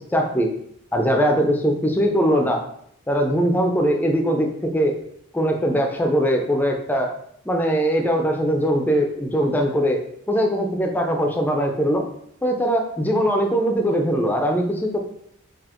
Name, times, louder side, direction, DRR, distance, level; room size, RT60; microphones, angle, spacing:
voice 1, 0.1-0.5 0.9-2.6 3.1-4.9 5.3-7.1 7.5-10.0 10.3-12.0 12.4-15.0, equal, 10° left, 2 dB, 0.4 m, -21 dB
4.0 x 2.8 x 3.0 m, 0.70 s
head